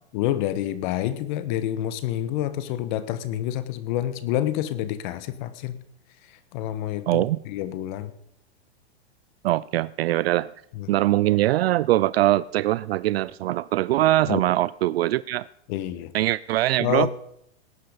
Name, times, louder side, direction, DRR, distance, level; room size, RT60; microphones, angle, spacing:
voice 1, 0.1-5.8 6.5-8.1 10.7-10.9 14.3-14.5 15.7-16.1 16.8-17.1, left 12 dB, 45° left, 1.4 m, -28 dB
voice 2, 7.1-7.4 9.4-10.5 10.9-15.5 16.1-17.1, right 15 dB, 65° right, 0.5 m, -22 dB
18.0 x 9.7 x 5.2 m
hypercardioid pair, 135°, 33 cm